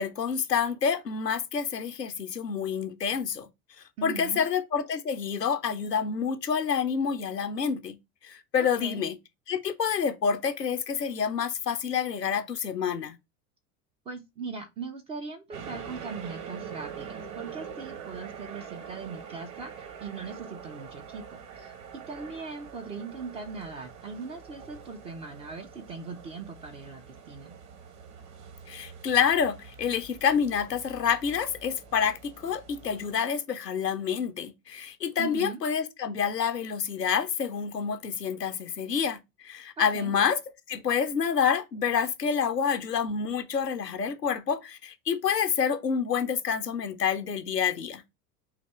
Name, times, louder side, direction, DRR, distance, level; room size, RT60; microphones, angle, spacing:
voice 1, 0.0-3.5 4.0-8.0 8.2-9.2 9.5-13.2 28.7-40.4 40.7-48.0, left 7 dB, 90° left, 0.6 m, -28 dB
voice 2, 4.0-4.4 8.8-9.0 14.1-19.7 20.0-21.2 21.6-27.5 35.2-35.6 39.8-40.1, right 4 dB, 15° right, 0.4 m, -40 dB
sound 1, 15.5-33.2, right 7 dB, 35° right, 1.1 m, -44 dB
4.1 x 2.8 x 4.1 m
figure-of-eight pair, 80°, 47 cm